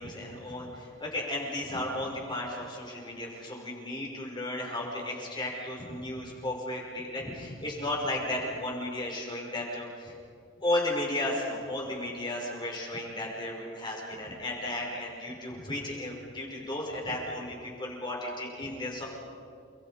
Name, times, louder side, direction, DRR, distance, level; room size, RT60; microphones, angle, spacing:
voice 1, 0.0-10.1 10.6-19.0, left 1 dB, 25° left, -2 dB, 6.0 m, -34 dB
29.5 x 22.0 x 5.2 m, 2.3 s
head